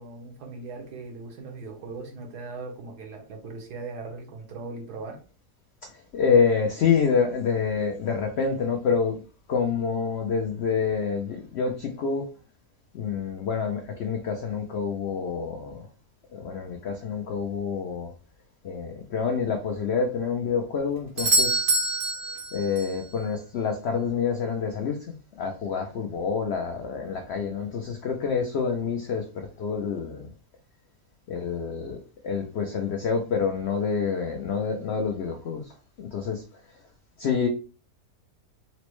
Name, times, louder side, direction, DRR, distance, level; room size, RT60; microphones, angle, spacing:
voice 1, 0.0-5.2, right 3 dB, 85° right, 1.4 m, -39 dB
voice 2, 5.8-9.2 9.5-12.3 12.9-15.9 16.3-18.1 18.6-21.8 22.5-30.3 31.3-36.8 37.2-37.5, left 6 dB, 80° left, 0.5 m, -27 dB
Doorbell, 21.2-23.0 27.1-27.2, right 2 dB, 60° right, 0.5 m, -25 dB
4.2 x 2.0 x 3.0 m
omnidirectional pair, 1.7 m